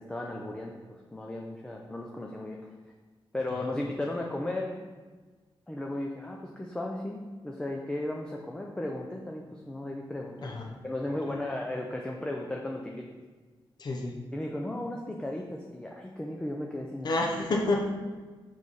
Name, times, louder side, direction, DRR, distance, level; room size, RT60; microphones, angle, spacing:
voice 1, 0.0-2.6 3.3-4.7 5.7-10.6 10.8-13.1 14.3-17.1, left 1 dB, 10° left, -1 dB, 0.5 m, -35 dB
voice 2, 10.4-10.8 11.3-11.4 13.8-14.2 17.0-17.8, left 2 dB, 50° left, 0 dB, 0.8 m, -30 dB
6.3 x 3.2 x 5.4 m, 1.4 s
wide cardioid pair, 150°, 9 cm